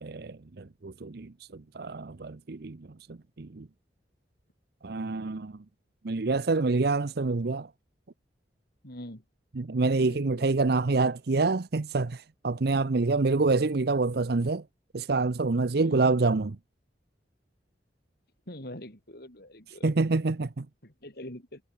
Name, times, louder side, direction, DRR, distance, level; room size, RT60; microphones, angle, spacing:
voice 1, 0.0-3.7 4.8-5.6 6.0-7.7 9.6-14.6 14.9-16.6 19.8-20.7, right 3 dB, 65° right, 0.7 m, -27 dB
voice 2, 8.8-9.2 9.9-10.5 12.9-13.0 15.8-16.0 18.5-20.0 20.8-21.6, left 1 dB, 60° left, 6.8 m, -44 dB
head